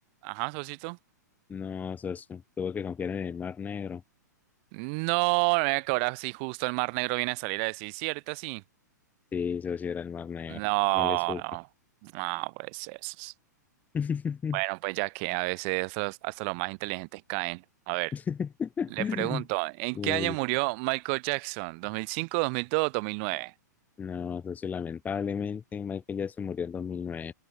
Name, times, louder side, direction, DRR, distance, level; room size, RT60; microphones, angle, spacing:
voice 1, 0.2-1.0 4.7-8.6 10.5-11.6 12.0-13.3 14.5-18.1 19.0-23.5, right 35 dB, 40° right, 2.2 m, -30 dB
voice 2, 1.5-4.0 9.3-10.6 10.9-11.4 13.9-14.6 18.1-19.5 19.9-20.4 24.0-27.3, left 6 dB, 15° left, 5.9 m, -33 dB
figure-of-eight pair, 105°, 10 cm